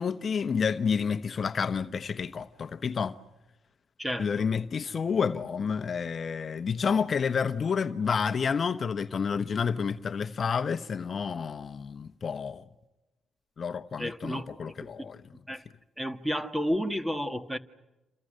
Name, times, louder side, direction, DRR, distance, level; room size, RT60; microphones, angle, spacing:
voice 1, 0.0-3.2 4.2-12.6 13.6-15.2, left 6 dB, 45° left, 1.0 m, -29 dB
voice 2, 4.0-4.4 14.0-15.1 15.5-15.6 16.0-17.6, equal, 5° right, 1.8 m, -32 dB
28.5 x 27.5 x 6.6 m
cardioid pair, 90°, 0 cm